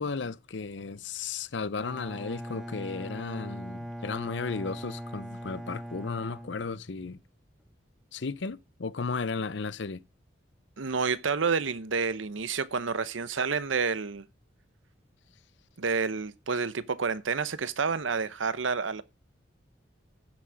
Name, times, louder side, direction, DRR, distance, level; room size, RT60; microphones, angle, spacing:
voice 1, 0.0-7.2 8.1-10.0, left 4 dB, 70° left, 0.6 m, -34 dB
Bowed string instrument, 1.7-7.2, equal, ahead, 0.9 m, -41 dB
voice 2, 10.8-14.2 15.8-19.0, right 5 dB, 90° right, 0.8 m, -29 dB
15.0 x 6.2 x 6.3 m
head